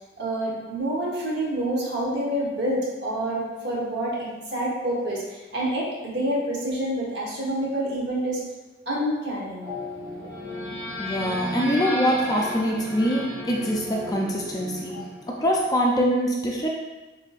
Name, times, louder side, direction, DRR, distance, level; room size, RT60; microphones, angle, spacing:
voice 1, 0.2-8.4 8.9-9.7, right 1 dB, 60° right, -4 dB, 1.2 m, -27 dB
sound 1, 9.6-15.8, left 1 dB, 15° right, 1.2 m, -34 dB
voice 2, 11.0-14.9 15.4-16.7, equal, 20° left, -1 dB, 0.5 m, -24 dB
7.4 x 2.7 x 2.4 m, 1.2 s
head